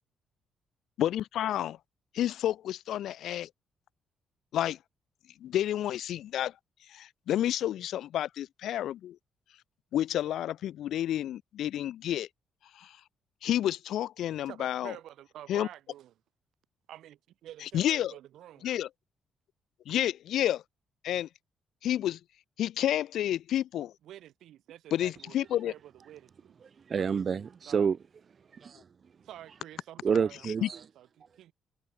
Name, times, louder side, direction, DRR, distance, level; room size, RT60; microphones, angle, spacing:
voice 1, 1.0-1.8 2.1-3.5 4.5-4.8 5.4-6.5 6.9-9.2 9.9-12.3 12.8-13.0 13.4-14.9 15.5-15.7 17.7-18.1 18.6-18.9 19.9-20.6 21.0-21.3 21.8-22.2 22.6-23.9 24.9-25.7 30.6-30.7, left 12 dB, 75° left, 0.4 m, -30 dB
voice 2, 14.5-16.1 16.9-18.7 24.0-26.5 27.7-28.0 29.2-31.5, right 12 dB, 80° right, 3.8 m, -49 dB
voice 3, 26.9-28.0 28.5-28.8 30.0-30.8, right 6 dB, 45° right, 0.7 m, -28 dB
cardioid pair, 90°, 0 cm